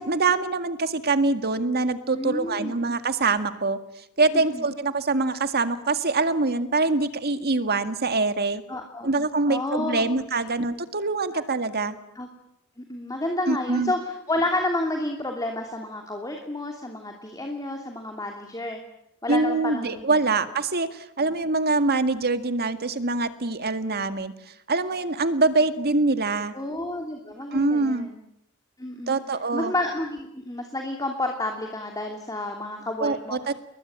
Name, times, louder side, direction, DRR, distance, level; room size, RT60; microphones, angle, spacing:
voice 1, 0.0-3.8 4.2-8.6 9.0-12.0 13.5-13.9 19.3-24.3 24.7-26.5 27.5-28.1 29.1-29.7 33.0-33.5, right 3 dB, 45° right, 10 dB, 2.0 m, -24 dB
voice 2, 2.1-2.7 4.3-4.7 8.7-9.1 9.5-10.1 11.3-11.4 12.1-12.3 12.8-18.8 19.2-20.0 26.5-28.2 28.8-29.2 29.5-33.4, left 2 dB, 15° left, 3 dB, 2.9 m, -30 dB
29.5 x 22.0 x 8.9 m, 0.78 s
head